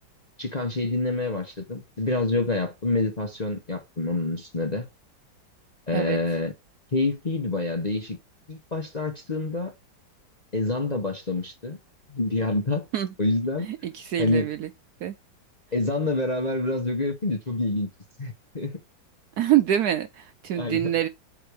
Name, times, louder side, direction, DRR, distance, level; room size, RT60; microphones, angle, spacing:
voice 1, 0.4-4.9 5.9-6.5 6.9-8.2 8.5-9.7 10.5-11.8 12.1-12.9 13.2-13.7 14.2-14.5 15.7-17.9 18.2-18.7 20.6-20.9, left 2 dB, 30° left, 0.8 m, -27 dB
voice 2, 13.8-14.7 15.0-15.1 19.4-21.1, right 12 dB, 75° right, 0.9 m, -25 dB
8.0 x 3.6 x 3.3 m
omnidirectional pair, 2.0 m